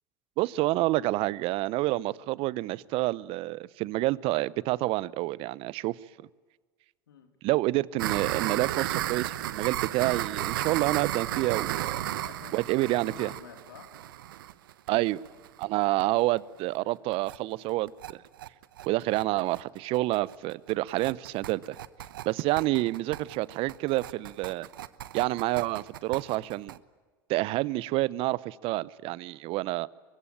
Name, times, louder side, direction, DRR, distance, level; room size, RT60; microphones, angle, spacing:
voice 1, 0.4-6.0 7.4-12.0 12.5-13.3 14.9-15.2 15.6-18.2 18.8-21.8 22.2-24.7 25.1-26.8 27.3-29.9, right 19 dB, 55° right, 22 dB, 0.8 m, -28 dB
sound 1, 8.0-15.6 16.0-16.1 16.4-16.5 16.8-16.9 17.1-17.4 17.7-26.8, right 13 dB, 80° right, 0.9 m, -34 dB
voice 2, 12.0-13.9 18.9-19.1, left 7 dB, 85° left, 6 dB, 2.5 m, -50 dB
24.0 x 22.0 x 8.9 m, 1.4 s
hypercardioid pair, 80°, 11 cm